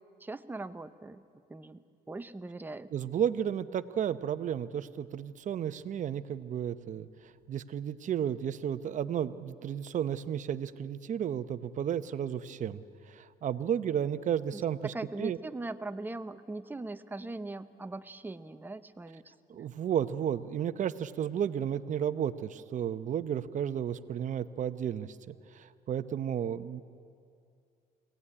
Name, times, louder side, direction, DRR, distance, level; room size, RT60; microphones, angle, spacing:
voice 1, 0.2-1.2 1.5-2.9 14.5-19.6, right 2 dB, 10° right, 10 dB, 0.8 m, -41 dB
voice 2, 2.9-7.1 7.5-14.9 15.2-15.4 19.5-26.8, right 9 dB, 45° right, 13 dB, 0.8 m, -33 dB
23.0 x 17.5 x 9.9 m, 2.5 s
cardioid pair, 110°, 17 cm